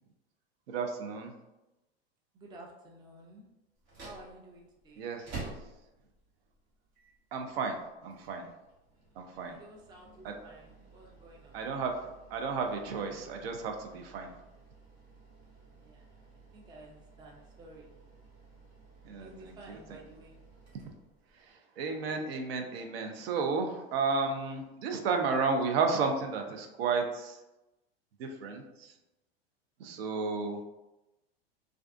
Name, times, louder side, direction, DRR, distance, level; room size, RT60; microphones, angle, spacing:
voice 1, 0.7-1.3 5.0-5.5 7.3-8.5 9.2-9.6 10.2-10.3 11.5-12.0 12.3-14.3 19.0-19.8 21.3-27.4 28.2-28.9 29.8-30.6, right 4 dB, 70° right, 4 dB, 0.5 m, -33 dB
voice 2, 2.3-3.5 4.0-5.1 9.3-11.7 15.7-18.0 19.2-20.4, right 2 dB, 15° right, 0 dB, 0.4 m, -53 dB
sound 1, 3.7-21.5, right 3 dB, 55° right, 1.1 m, -52 dB
2.4 x 2.3 x 2.4 m, 0.99 s
hypercardioid pair, 105°, 31 cm